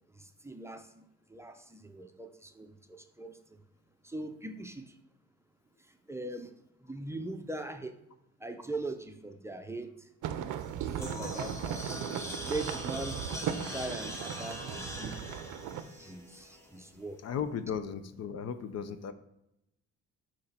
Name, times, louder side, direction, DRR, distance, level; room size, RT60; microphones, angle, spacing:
voice 1, 0.2-1.0 1.3-3.4 4.0-4.9 6.1-6.5 6.8-8.0 8.4-10.1 10.7-11.9 12.4-13.2 13.6-15.2 15.8-17.2, right 2 dB, 10° right, 6 dB, 0.5 m, -41 dB
sound 1, 10.2-15.8, right 9 dB, 80° right, 0.6 m, -37 dB
sound 2, 10.6-16.9, equal, 10° left, 1.1 m, -43 dB
voice 2, 17.2-19.1, left 7 dB, 60° left, 11 dB, 0.5 m, -36 dB
6.2 x 3.0 x 5.6 m, 0.83 s
cardioid pair, 90°, 30 cm